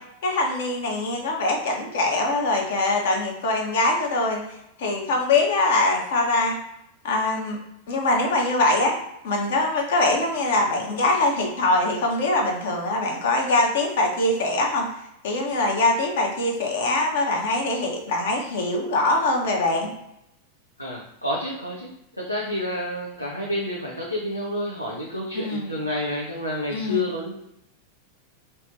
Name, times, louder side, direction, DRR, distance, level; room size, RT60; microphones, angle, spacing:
voice 1, 0.2-6.6 7.0-7.6 7.9-9.0 9.2-14.8 15.2-19.9 25.3-25.7 26.7-27.1, left 2 dB, 55° left, 0 dB, 0.9 m, -23 dB
voice 2, 20.8-21.9 22.2-27.3, left 1 dB, 90° left, -4 dB, 0.6 m, -29 dB
3.2 x 2.8 x 3.2 m, 0.80 s
figure-of-eight pair, 90°, 0 cm